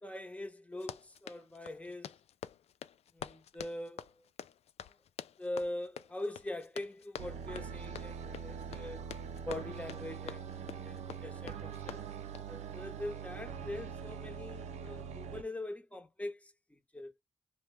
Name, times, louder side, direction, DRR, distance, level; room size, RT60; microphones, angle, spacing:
voice 1, 0.0-2.1 3.1-4.3 4.8-5.0 5.4-9.0 9.5-12.0 12.5-17.1, left 1 dB, 10° left, 0.9 m, -43 dB
Run, 0.7-12.5, left 9 dB, 70° left, 0.4 m, -48 dB
sound 1, 7.2-15.4, right 7 dB, 80° right, 0.4 m, -43 dB
2.8 x 2.2 x 3.2 m
supercardioid pair, 50°, 11 cm